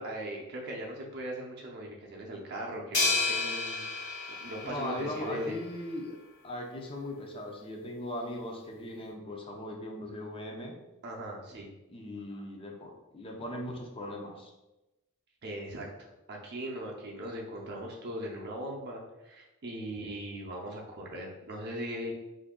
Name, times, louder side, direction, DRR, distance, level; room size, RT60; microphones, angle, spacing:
voice 1, 0.0-5.6 11.0-11.7 15.4-15.9 16.3-22.1, equal, 50° right, -1 dB, 0.6 m, -39 dB
sound 1, 2.9-5.4, left 3 dB, 55° left, 1.1 m, -31 dB
voice 2, 4.6-6.2 6.4-10.7 11.9-14.5, left 1 dB, 25° left, 1 dB, 0.5 m, -39 dB
2.8 x 2.6 x 3.6 m, 0.97 s
head